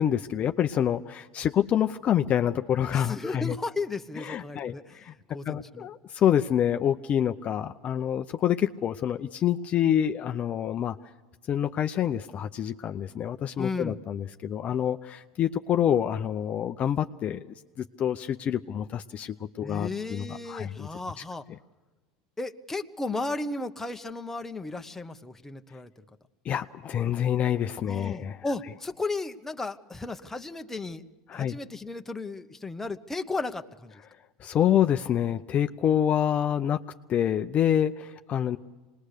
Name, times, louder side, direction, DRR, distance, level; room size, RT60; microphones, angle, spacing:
voice 1, 0.0-3.6 4.2-5.1 5.4-11.0 11.5-20.9 26.4-28.4 31.3-31.6 34.4-36.8 37.1-38.6, left 10 dB, 35° left, 8 dB, 0.6 m, -27 dB
voice 2, 2.9-5.0 5.3-5.9 13.6-14.0 19.6-21.5 22.4-26.0 27.8-31.0 31.3-34.0, left 3 dB, 10° left, 6 dB, 1.0 m, -34 dB
25.5 x 20.0 x 6.6 m, 1.2 s
supercardioid pair, 110°, 4 cm